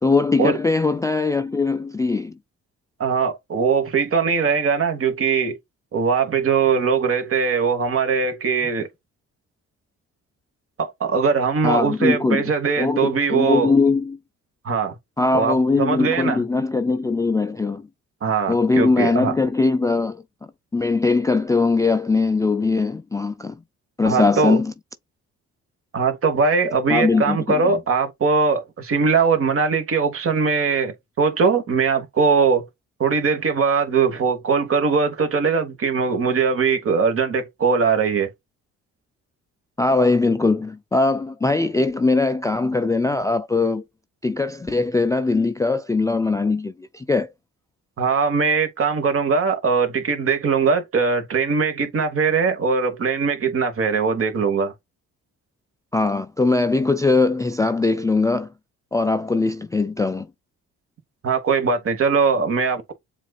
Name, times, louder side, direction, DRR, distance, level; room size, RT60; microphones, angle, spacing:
voice 1, 0.0-2.4 11.6-12.4 12.8-14.2 15.2-17.9 18.5-20.2 20.7-23.6 24.0-24.7 26.9-27.8 39.8-43.8 44.2-47.3 55.9-58.5 58.9-60.3, left 3 dB, 10° left, 0.3 m, -20 dB
voice 2, 3.0-5.6 5.9-8.9 10.8-13.7 14.6-15.0 15.3-16.4 18.2-19.3 24.0-24.6 25.9-32.7 33.0-38.3 48.0-54.7 61.2-62.9, right 5 dB, 45° right, 1.3 m, -21 dB
7.3 x 2.5 x 2.3 m
cardioid pair, 90°, 30 cm